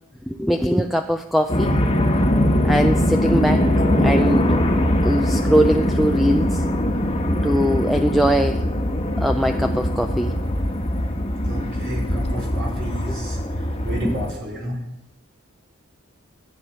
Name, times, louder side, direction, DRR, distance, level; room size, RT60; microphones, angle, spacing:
voice 1, 0.3-1.7 2.6-3.6 4.0-4.6 5.0-6.6 7.4-8.6 9.2-10.3 13.1-13.2 14.0-14.2, equal, ahead, 5 dB, 0.4 m, -21 dB
sound 1, 1.5-14.3, equal, 30° left, 1.3 m, -21 dB
voice 2, 11.5-13.4 13.8-14.8, equal, 65° right, -2 dB, 5.0 m, -31 dB
14.0 x 8.5 x 5.6 m, 0.84 s
head